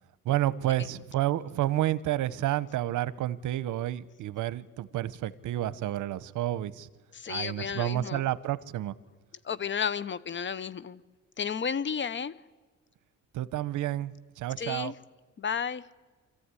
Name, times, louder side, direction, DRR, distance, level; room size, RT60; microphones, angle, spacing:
voice 1, 0.2-6.9 7.3-8.9 13.3-14.9, right 13 dB, 80° right, 18 dB, 0.9 m, -30 dB
voice 2, 7.1-8.2 9.4-11.0 11.4-12.3 14.6-14.9 15.4-15.8, left 7 dB, 40° left, 19 dB, 0.9 m, -32 dB
26.5 x 14.5 x 9.8 m, 1.3 s
cardioid pair, 90°, 30 cm